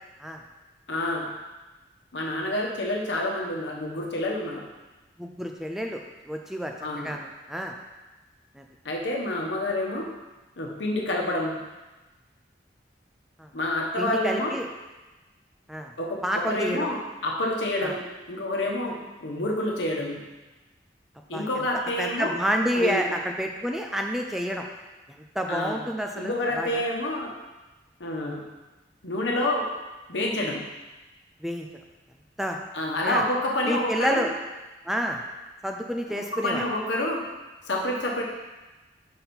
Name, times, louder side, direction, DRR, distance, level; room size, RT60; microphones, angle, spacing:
voice 1, 0.9-1.3 2.1-4.7 6.8-7.1 8.8-10.1 10.6-11.6 13.5-14.5 16.0-20.2 21.3-22.3 22.7-23.1 25.5-25.8 26.2-27.3 28.0-28.4 29.0-29.7 30.1-30.6 32.7-34.3 36.1-37.2 37.7-38.2, left 1 dB, 85° left, -1 dB, 1.1 m, -28 dB
voice 2, 5.2-6.0 6.3-7.7 8.6-8.7 13.4-13.5 14.0-14.7 15.7-15.9 16.2-16.9 17.8-17.9 21.3-21.5 22.0-24.6 25.1-26.8 31.4-31.7 32.4-32.6 33.0-33.2 33.7-34.3 34.8-35.2 35.6-36.6, equal, ahead, 2 dB, 0.4 m, -29 dB
5.7 x 5.4 x 4.3 m, 1.1 s
head